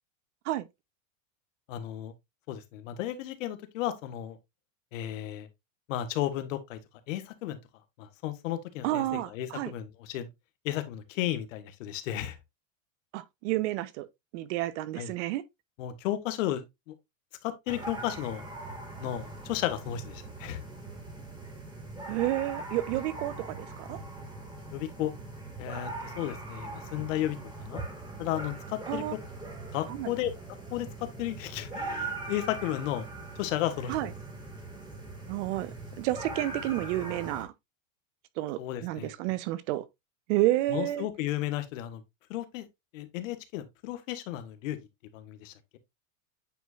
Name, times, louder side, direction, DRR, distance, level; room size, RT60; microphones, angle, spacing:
voice 1, 1.7-2.1 2.5-4.4 4.9-5.5 5.9-6.8 7.1-7.6 8.0-10.3 10.6-12.4 15.0-15.1 15.8-16.9 17.4-18.5 19.0-20.6 24.7-25.1 25.6-27.4 27.7-27.8 28.2-29.0 29.7-30.3 30.7-33.1 33.4-33.9 38.6-39.1 40.7-42.0 42.3-42.7 42.9-44.8 45.1-45.8, left 13 dB, 70° left, 1.5 m, -34 dB
voice 2, 8.8-9.7 13.1-14.1 14.3-15.4 22.1-24.0 28.9-29.1 29.9-30.1 33.9-34.1 35.3-37.5 38.4-39.8 40.3-41.1, right 16 dB, 60° right, 0.9 m, -30 dB
sound 1, 17.7-37.4, right 2 dB, 10° right, 2.1 m, -41 dB
9.1 x 4.6 x 2.5 m
supercardioid pair, 130°, 40 cm